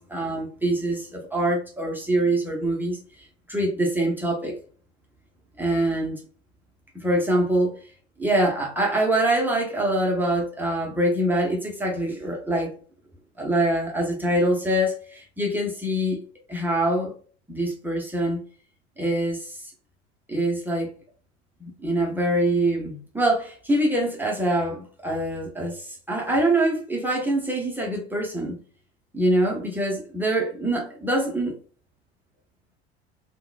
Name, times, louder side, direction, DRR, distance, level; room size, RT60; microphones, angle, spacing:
voice 1, 0.0-3.0 3.5-4.5 5.6-6.2 6.9-7.7 8.2-12.7 13.4-16.2 16.5-17.1 17.5-18.4 19.0-19.6 20.3-20.9 21.6-28.6 29.1-31.5, right 1 dB, 5° right, 0.7 m, -24 dB
3.7 x 2.1 x 2.5 m
figure-of-eight pair, 70°, 32 cm